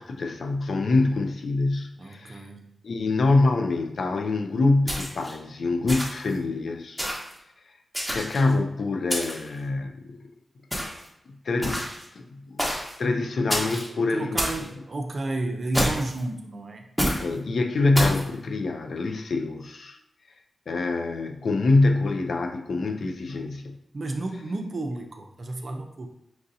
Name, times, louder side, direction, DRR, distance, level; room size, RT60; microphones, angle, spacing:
voice 1, 0.0-2.5 2.8-7.1 8.1-10.3 11.4-11.9 12.1-12.6 13.0-14.5 17.2-20.0 20.7-23.8, left 3 dB, 70° left, 4 dB, 0.5 m, -25 dB
voice 2, 2.0-2.7 13.9-16.9 23.9-26.1, right 2 dB, 50° right, 4 dB, 0.5 m, -32 dB
sound 1, 4.9-5.3 5.9-6.3 7.0-7.3 7.9-8.5 9.1-9.5 10.7-11.1 11.6-12.0 12.6-12.9 13.5-13.9 14.4-14.6 15.7-16.2 17.0-17.2 17.9-18.2, equal, ahead, 1.0 m, -28 dB
5.8 x 2.7 x 2.6 m, 0.82 s
wide cardioid pair, 115°, 0 cm